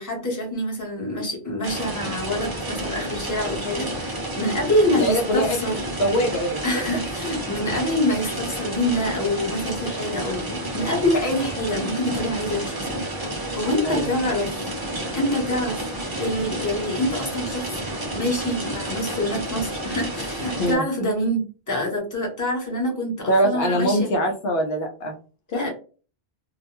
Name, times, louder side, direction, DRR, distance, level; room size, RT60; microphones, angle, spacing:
voice 1, 0.0-5.8 6.6-13.1 13.5-14.5 15.1-15.8 16.2-17.8 18.1-24.1 25.5-25.7, left 1 dB, 20° left, -2 dB, 0.9 m, -26 dB
sound 1, 1.6-20.7, right 1 dB, 25° right, 0.7 m, -30 dB
voice 2, 4.9-5.6 5.9-6.6 10.8-11.0 13.8-14.1 20.6-20.8 23.3-25.1 25.5-25.7, equal, 75° left, 3 dB, 0.8 m, -23 dB
2.4 x 2.1 x 2.9 m, 0.37 s
omnidirectional pair, 1.1 m